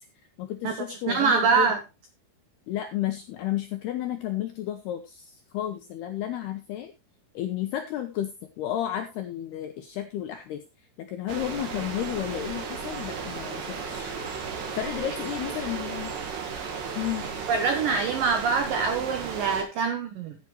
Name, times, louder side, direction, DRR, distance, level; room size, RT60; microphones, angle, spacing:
voice 1, 0.4-1.7 2.7-6.9 7.3-14.2 14.8-16.1 17.0-17.3, left 12 dB, 80° left, 6 dB, 2.4 m, -32 dB
voice 2, 1.0-1.8 17.5-20.4, right 5 dB, 80° right, 7 dB, 2.0 m, -24 dB
sound 1, 11.3-19.6, right 5 dB, 60° right, 4.3 m, -35 dB
15.5 x 8.4 x 3.1 m, 0.25 s
omnidirectional pair, 5.9 m